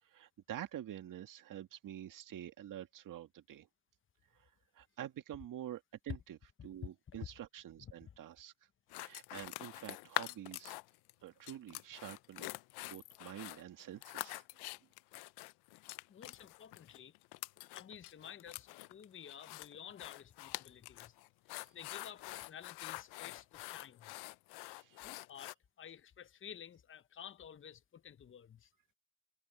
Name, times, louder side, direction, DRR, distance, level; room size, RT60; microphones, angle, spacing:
voice 1, 0.0-3.7 4.3-8.5 8.9-10.8 11.2-12.5 12.8-14.4 21.6-21.7 24.6-25.1, right 11 dB, 50° right, 1.9 m, -48 dB
sound 1, 8.9-11.1 11.4-25.5, left 21 dB, 70° left, 0.8 m, -45 dB
voice 2, 16.1-17.1 17.7-21.1 21.5-24.1 25.0-28.7, left 8 dB, 30° left, 1.0 m, -53 dB
supercardioid pair, 75°, 40 cm